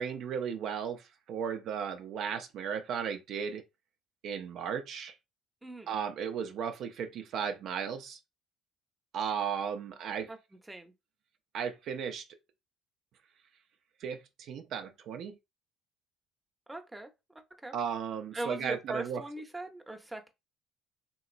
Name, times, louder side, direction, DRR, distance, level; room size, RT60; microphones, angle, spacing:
voice 1, 0.0-3.6 4.2-5.1 5.9-8.2 9.1-10.3 11.5-12.2 14.0-15.4 17.7-19.2, right 7 dB, 65° right, 0.5 m, -35 dB
voice 2, 5.6-5.9 10.3-10.4 10.7-10.9 16.7-17.8 18.3-20.3, right 1 dB, 10° right, 0.7 m, -41 dB
3.0 x 2.9 x 2.5 m
supercardioid pair, 70°, 0 cm